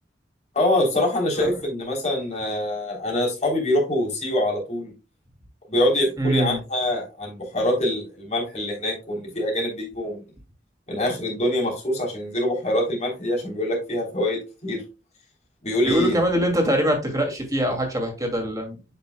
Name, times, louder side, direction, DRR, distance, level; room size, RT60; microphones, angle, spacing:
voice 1, 0.5-4.9 5.7-10.3 10.9-14.8 15.6-16.2, left 1 dB, 40° left, -2 dB, 3.3 m, -24 dB
voice 2, 6.2-6.6 15.8-18.8, right 1 dB, 20° right, 2 dB, 2.3 m, -23 dB
8.1 x 6.0 x 2.2 m, 0.30 s
head